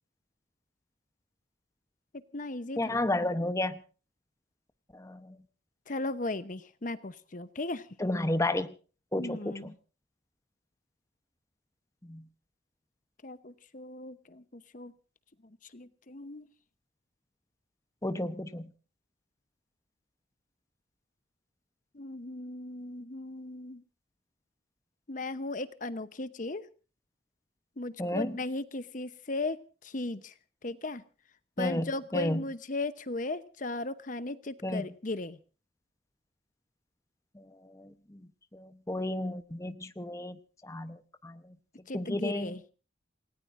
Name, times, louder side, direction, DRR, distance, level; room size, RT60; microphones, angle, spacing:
voice 1, 2.1-3.0 5.9-7.9 9.2-9.8 13.2-14.9 15.7-16.5 21.9-23.8 25.1-26.7 27.8-30.3 30.6-31.0 31.6-35.4 41.9-42.6, left 2 dB, 45° left, 13 dB, 0.9 m, -37 dB
voice 2, 2.8-3.7 4.9-5.4 8.0-8.7 9.1-9.5 12.1-12.2 18.0-18.7 28.0-28.4 31.6-32.4 34.6-34.8 37.4-38.2 38.5-40.4 40.6-41.4 41.9-42.6, left 1 dB, 15° left, 10 dB, 0.9 m, -32 dB
28.5 x 18.5 x 2.6 m, 0.36 s
head